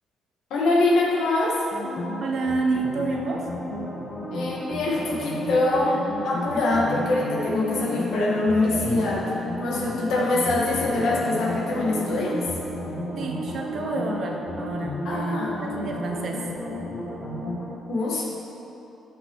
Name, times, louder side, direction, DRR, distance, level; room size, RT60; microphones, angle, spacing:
voice 1, 0.5-1.6 4.3-12.4 15.0-15.5 17.9-18.3, left 2 dB, 80° left, -3 dB, 1.6 m, -24 dB
sound 1, 1.7-17.7, left 1 dB, 30° left, 1.6 m, -32 dB
voice 2, 2.2-3.5 13.2-16.5, right 3 dB, 60° right, 1 dB, 1.0 m, -29 dB
11.5 x 6.6 x 3.1 m, 2.9 s
cardioid pair, 90°, 0 cm